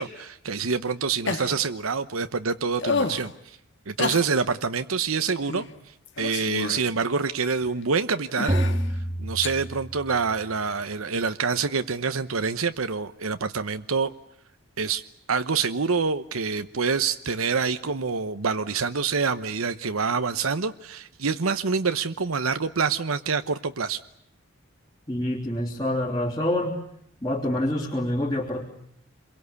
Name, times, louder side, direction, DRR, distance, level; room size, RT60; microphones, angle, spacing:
voice 1, 0.0-3.6 3.9-5.6 6.2-8.6 9.2-14.1 14.8-15.0 15.3-24.0, right 5 dB, 85° right, 10 dB, 1.0 m, -26 dB
sound 1, 1.3-1.6 2.7-3.3 4.0-4.3 5.5-5.7 6.1-6.9 7.6-7.7 8.3-8.8 9.4-9.5 11.3-11.4, left 4 dB, 60° left, 1.9 m, -29 dB
sound 2, 8.5-10.4, right 1 dB, 25° right, 2.2 m, -28 dB
voice 2, 25.1-26.8 27.2-28.7, left 1 dB, 20° left, -4 dB, 3.3 m, -26 dB
28.0 x 22.5 x 8.3 m, 0.74 s
head